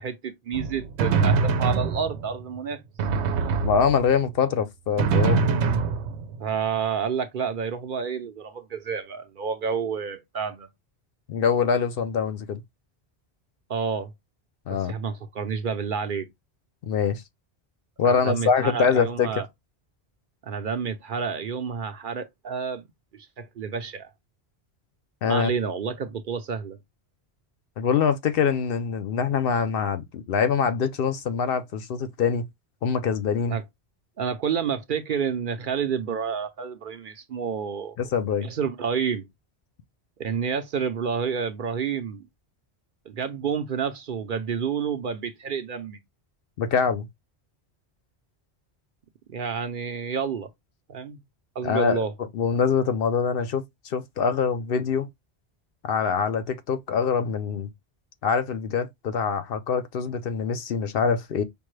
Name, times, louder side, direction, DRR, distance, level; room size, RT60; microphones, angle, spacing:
voice 1, 0.0-2.8 6.4-10.7 13.7-14.1 14.7-16.3 18.0-19.5 20.4-22.9 23.1-24.1 25.2-26.8 33.5-33.6 34.2-38.0 38.4-39.3 40.2-42.3 43.1-46.0 49.3-50.5 50.9-51.2 51.6-52.1, right 6 dB, 60° right, 0.7 m, -29 dB
Drum, 0.5-2.4 3.0-4.3 5.0-6.5, right 5 dB, 85° right, 0.9 m, -24 dB
voice 2, 3.6-5.5 11.3-12.6 14.7-14.9 16.8-17.2 18.0-19.3 25.2-25.5 27.8-32.4 32.8-33.6 38.0-38.5 46.6-47.1 51.6-52.0 52.3-55.1 55.8-57.7 58.2-61.4, left 6 dB, 65° left, 0.7 m, -24 dB
5.2 x 2.1 x 3.1 m
omnidirectional pair, 1.1 m